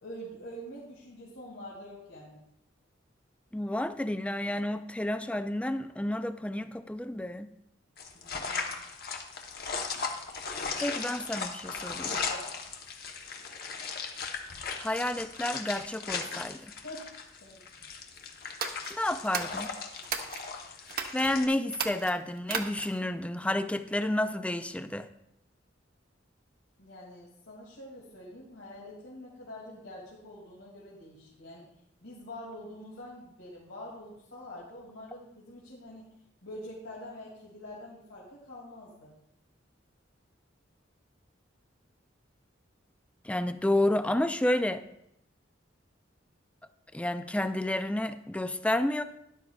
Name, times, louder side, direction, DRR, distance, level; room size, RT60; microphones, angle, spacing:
voice 1, 0.0-2.4 8.1-8.8 12.3-12.5 16.8-17.1 17.4-17.6 26.8-31.7 32.0-36.0 36.4-39.1, left 1 dB, 85° left, -6 dB, 2.5 m, -45 dB
voice 2, 3.5-7.5 10.8-12.2 14.8-16.7 18.9-19.7 21.1-25.1 43.2-44.8 46.9-49.0, left 1 dB, 5° left, 10 dB, 0.4 m, -30 dB
sound 1, 8.0-21.4, left 5 dB, 55° left, 1.0 m, -37 dB
sound 2, 18.5-20.4 20.9-21.3 21.7-23.1, right 6 dB, 50° right, 0.9 m, -36 dB
12.5 x 11.0 x 2.4 m, 0.78 s
head